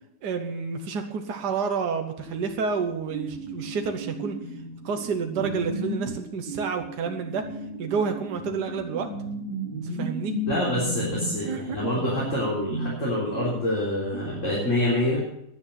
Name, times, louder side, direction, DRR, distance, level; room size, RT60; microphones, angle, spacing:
voice 1, 0.2-4.4 4.9-7.5 7.8-9.1 9.8-10.4 11.5-12.1, right 5 dB, 75° right, 4 dB, 1.8 m, -29 dB
sound 1, 2.2-2.8 3.1-13.6 13.9-14.2, right 1 dB, 15° left, 4.8 m, -35 dB
voice 2, 10.5-15.2, left 1 dB, 45° left, -7 dB, 4.3 m, -26 dB
11.0 x 8.9 x 8.7 m, 0.79 s
omnidirectional pair, 1.8 m